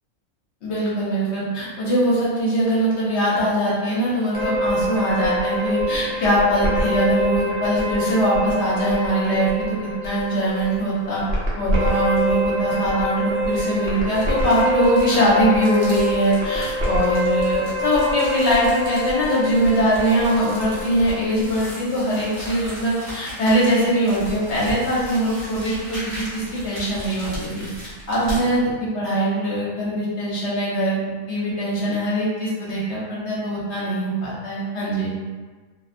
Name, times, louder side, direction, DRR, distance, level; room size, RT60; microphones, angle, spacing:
voice 1, 0.6-11.2 11.6-27.6 28.1-31.0 31.3-35.1, equal, 60° left, -7 dB, 0.8 m, -22 dB
sound 1, 4.3-21.4, equal, 60° right, 0.8 m, -25 dB
sound 2, 10.3-10.7 11.1-11.2 11.8-12.4 13.2-28.4, equal, 35° right, 0.5 m, -37 dB
2.4 x 2.2 x 2.4 m, 1.4 s
omnidirectional pair, 1.6 m